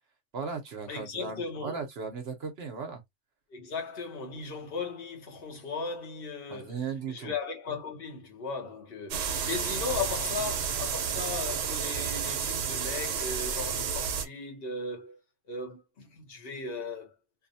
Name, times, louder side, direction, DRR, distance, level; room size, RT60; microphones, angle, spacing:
voice 1, 0.3-3.0 6.5-7.3, right 5 dB, 60° right, 0.9 m, -37 dB
voice 2, 0.9-1.9 3.5-15.2 15.5-17.1, left 4 dB, 55° left, 1.0 m, -37 dB
sound 1, 9.1-14.3, right 7 dB, 90° right, 1.0 m, -31 dB
2.6 x 2.0 x 2.6 m
omnidirectional pair, 1.3 m